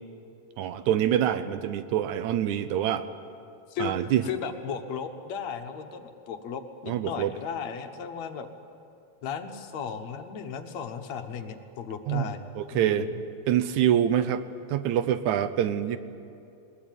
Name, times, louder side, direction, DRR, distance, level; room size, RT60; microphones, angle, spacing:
voice 1, 0.6-3.1 3.8-4.2 6.9-7.3 12.1-12.3 12.6-13.1 13.5-14.4 14.7-16.0, right 10 dB, 80° right, 12 dB, 2.2 m, -25 dB
voice 2, 3.7-8.5 9.2-12.4 12.7-13.2, left 6 dB, 70° left, 7 dB, 2.3 m, -35 dB
20.5 x 20.0 x 9.0 m, 2.5 s
omnidirectional pair, 3.4 m